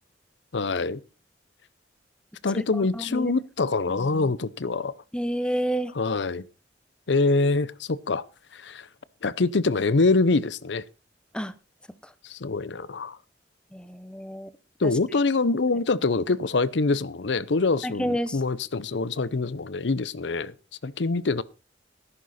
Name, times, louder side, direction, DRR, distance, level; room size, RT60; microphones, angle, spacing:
voice 1, 0.5-1.0 2.4-4.9 6.0-6.4 7.1-8.2 8.5-8.9 9.2-10.8 12.2-13.2 14.8-20.5 20.8-21.4, left 3 dB, 75° left, 0.7 m, -25 dB
voice 2, 2.5-3.3 4.0-4.3 5.1-5.9 11.3-11.5 13.7-14.5 17.8-18.4, equal, 5° left, 0.8 m, -30 dB
13.5 x 11.5 x 4.2 m
head